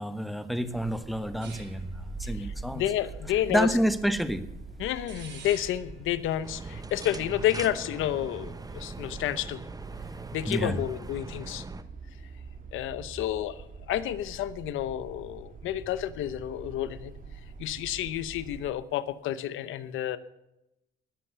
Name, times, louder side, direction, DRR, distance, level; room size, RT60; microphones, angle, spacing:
voice 1, 0.0-2.8 3.5-4.4 10.5-10.8, equal, ahead, 10 dB, 1.3 m, -28 dB
sound 1, 0.6-18.7, right 4 dB, 40° right, 2.6 m, -46 dB
sound 2, 1.4-6.9, right 3 dB, 70° right, 7.5 m, -43 dB
voice 2, 2.2-3.7 4.8-9.6 10.3-11.6 12.7-17.1 17.6-20.2, left 12 dB, 90° left, 14 dB, 0.9 m, -30 dB
sound 3, 6.4-11.8, right 3 dB, 20° right, 1.0 m, -41 dB
20.0 x 7.6 x 6.8 m, 0.88 s
cardioid pair, 90°, 20 cm